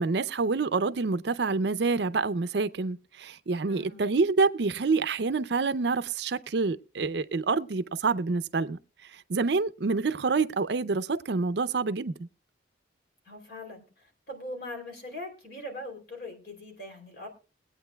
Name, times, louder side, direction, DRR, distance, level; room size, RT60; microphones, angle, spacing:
voice 1, 0.0-12.1, right 4 dB, 60° right, 0.5 m, -27 dB
voice 2, 3.6-4.0 13.2-17.3, left 1 dB, 55° left, 3.1 m, -41 dB
22.0 x 8.8 x 2.2 m
head